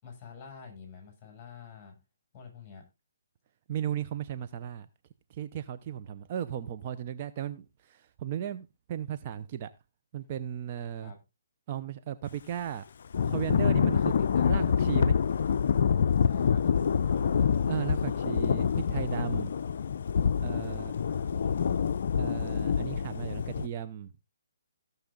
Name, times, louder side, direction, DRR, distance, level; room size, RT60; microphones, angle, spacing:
voice 1, 0.0-2.0 2.3-2.9 10.9-11.2 13.9-14.7 16.2-17.6 18.1-18.2 20.6-21.8, left 6 dB, 20° left, 7.6 m, -48 dB
voice 2, 3.7-4.9 5.3-9.7 10.1-11.1 11.7-12.9 13.2-14.1 14.4-15.1 17.7-19.5 20.4-20.9 22.2-24.2, right 10 dB, 35° right, 0.7 m, -35 dB
Thunder / Rain, 13.1-23.7, left 7 dB, 55° left, 0.5 m, -26 dB
16.5 x 7.1 x 3.9 m
hypercardioid pair, 150°, 0 cm